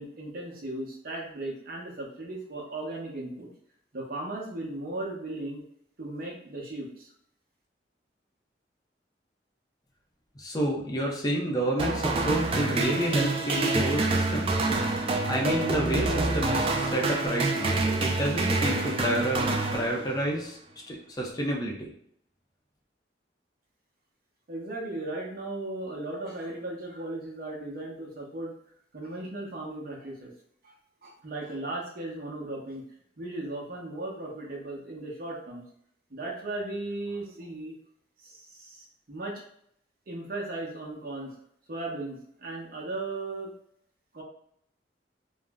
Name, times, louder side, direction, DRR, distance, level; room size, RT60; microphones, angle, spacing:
voice 1, 0.0-3.5 3.9-5.6 6.0-6.9 24.5-28.5 28.9-30.3 31.0-32.8 33.2-35.6 36.1-37.7 39.1-39.3 40.1-41.3 41.7-43.5 44.1-44.2, right 2 dB, 55° right, -2 dB, 0.8 m, -36 dB
voice 2, 10.4-14.5 15.3-20.6 20.9-21.9, right 1 dB, 20° left, -2 dB, 0.5 m, -29 dB
sound 1, 11.8-20.4, right 2 dB, 30° right, 0.3 m, -27 dB
2.5 x 2.0 x 3.4 m, 0.67 s
head